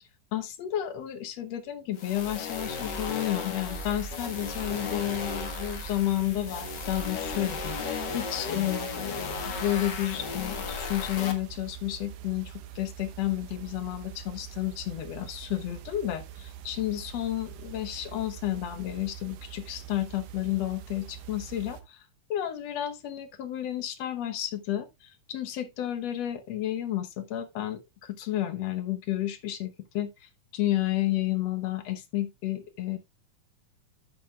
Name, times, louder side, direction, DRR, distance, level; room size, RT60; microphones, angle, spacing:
voice 1, 0.3-22.0 22.3-33.0, left 13 dB, 65° left, 1.9 m, -31 dB
sound 1, 1.9-11.3, left 4 dB, 45° left, 1.6 m, -35 dB
sound 2, 3.7-21.8, right 11 dB, 80° right, 2.5 m, -44 dB
10.5 x 8.6 x 2.3 m
omnidirectional pair, 3.7 m